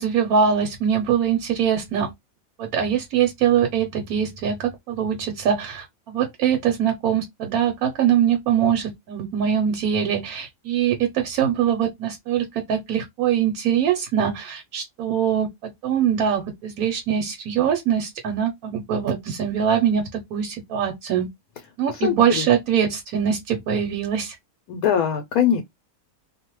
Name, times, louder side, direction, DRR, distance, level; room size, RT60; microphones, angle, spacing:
voice 1, 0.0-2.1 2.6-15.5 15.8-21.3 21.8-24.4, right 8 dB, 80° right, 1.2 m, -23 dB
voice 2, 22.0-22.4 24.7-25.6, left 9 dB, 90° left, 1.1 m, -21 dB
2.7 x 2.1 x 2.9 m
omnidirectional pair, 1.5 m